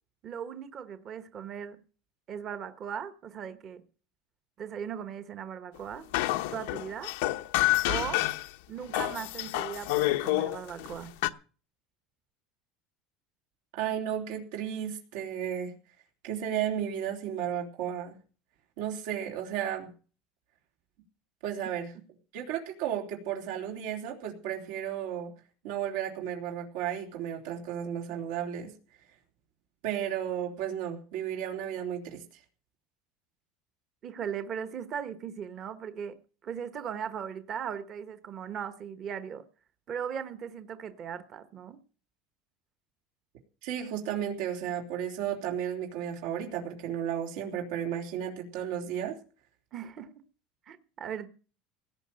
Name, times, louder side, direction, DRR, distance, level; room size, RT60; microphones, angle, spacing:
voice 1, 0.2-1.8 2.3-3.8 4.6-6.1 6.5-7.1 7.9-8.3 8.7-11.1 34.0-39.4 39.9-41.8 49.7-50.1 50.7-51.3, right 8 dB, 30° right, 11 dB, 1.2 m, -38 dB
sound 1, 6.1-8.5 8.9-11.3, left 18 dB, 85° left, 1.0 m, -28 dB
voice 2, 13.7-15.7 16.2-18.1 18.8-19.9 21.4-21.9 22.3-25.3 25.6-28.7 29.8-32.2 43.6-49.2, right 9 dB, 75° right, 1 dB, 3.4 m, -33 dB
17.0 x 5.9 x 8.9 m, 0.37 s
cardioid pair, 170°, 0 cm